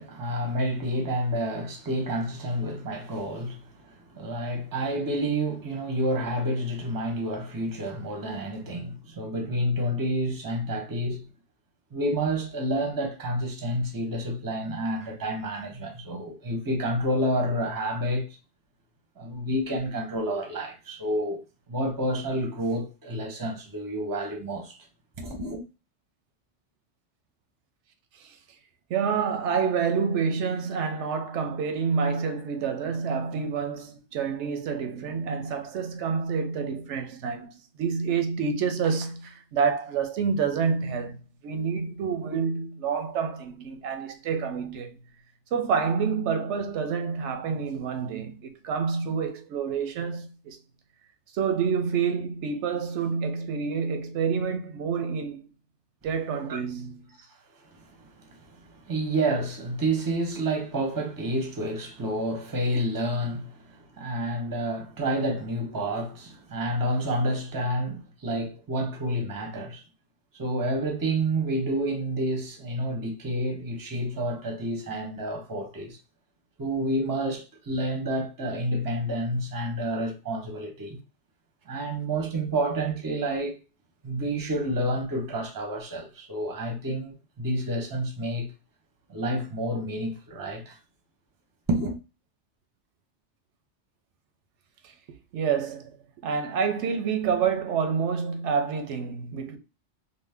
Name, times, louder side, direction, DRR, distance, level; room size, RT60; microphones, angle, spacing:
voice 1, 0.0-11.3 11.9-18.3 19.2-21.4 21.7-24.8 25.2-25.6 56.5-56.6 57.6-69.8 70.3-76.0 76.6-81.0 81.7-83.6 84.0-88.5 89.1-90.8 91.7-92.0, right 1 dB, 25° right, 0.6 m, -29 dB
voice 2, 28.9-45.0 45.5-50.6 51.3-55.4 56.0-57.2 94.8-94.9 95.3-96.0 96.2-99.6, right 6 dB, 90° right, 0.9 m, -28 dB
2.7 x 2.1 x 3.3 m
omnidirectional pair, 1.2 m